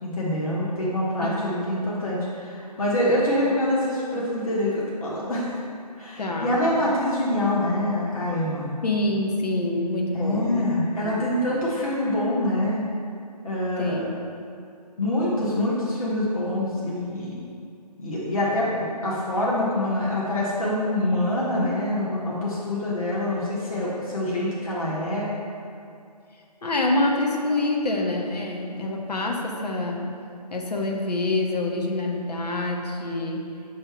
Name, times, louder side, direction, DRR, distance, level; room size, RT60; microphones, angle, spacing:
voice 1, 0.0-5.5 6.0-8.7 10.1-12.8 13.4-14.1 15.0-17.3 18.0-25.3, left 1 dB, 55° left, -7 dB, 1.3 m, -25 dB
voice 2, 6.2-6.6 8.8-10.7 11.0-11.2 13.8-14.1 26.6-30.0 30.5-33.5, left 2 dB, 70° left, 0 dB, 1.0 m, -26 dB
7.0 x 3.3 x 4.4 m, 2.4 s
figure-of-eight pair, 170°, 21 cm